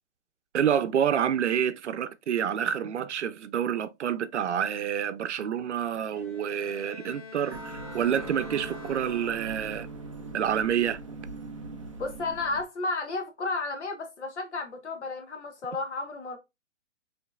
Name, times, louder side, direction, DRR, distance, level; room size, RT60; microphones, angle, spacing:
voice 1, 0.5-9.9 10.3-11.0, right 9 dB, 70° right, 0.6 m, -28 dB
Bowed string instrument, 6.1-9.8, left 5 dB, 50° left, 1.7 m, -46 dB
sound 1, 7.5-12.6, right 3 dB, 30° right, 0.4 m, -40 dB
voice 2, 12.0-16.4, left 3 dB, 70° left, 1.2 m, -32 dB
5.1 x 3.2 x 2.3 m
hypercardioid pair, 175°, 36 cm